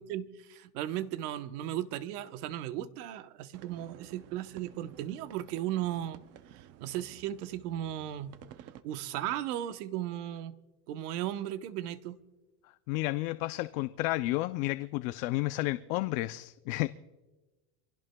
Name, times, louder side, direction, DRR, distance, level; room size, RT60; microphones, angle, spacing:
voice 1, 0.0-6.2 6.5-8.4 8.8-10.6 10.9-12.2, right 12 dB, 80° right, 1.1 m, -36 dB
sound 1, 3.5-8.8, right 11 dB, 35° right, 0.5 m, -54 dB
voice 2, 12.9-16.9, left 19 dB, 60° left, 0.5 m, -31 dB
26.5 x 16.5 x 2.2 m
cardioid pair, 155°, 45 cm